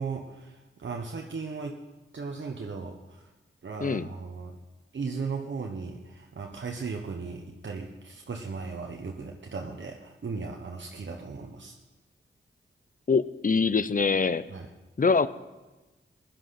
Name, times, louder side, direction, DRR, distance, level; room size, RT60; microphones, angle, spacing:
voice 1, 0.0-1.8 2.1-3.2 3.6-4.6 4.9-11.7 14.5-14.7, right 4 dB, 60° right, 1 dB, 1.2 m, -37 dB
voice 2, 13.1-14.4 15.0-15.3, left 4 dB, 40° left, 15 dB, 0.7 m, -24 dB
15.5 x 10.5 x 5.9 m, 1.1 s
cardioid pair, 45°, 21 cm